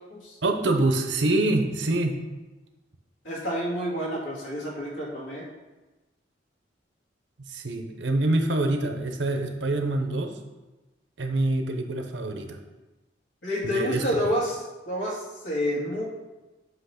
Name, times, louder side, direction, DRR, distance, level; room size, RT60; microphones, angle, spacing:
voice 1, 0.4-2.1 7.5-10.3 11.2-12.6 13.6-14.0, right 2 dB, 75° right, 5 dB, 0.8 m, -25 dB
voice 2, 3.2-5.5 13.4-16.1, equal, 90° left, -5 dB, 2.1 m, -29 dB
7.8 x 3.0 x 5.8 m, 1.1 s
head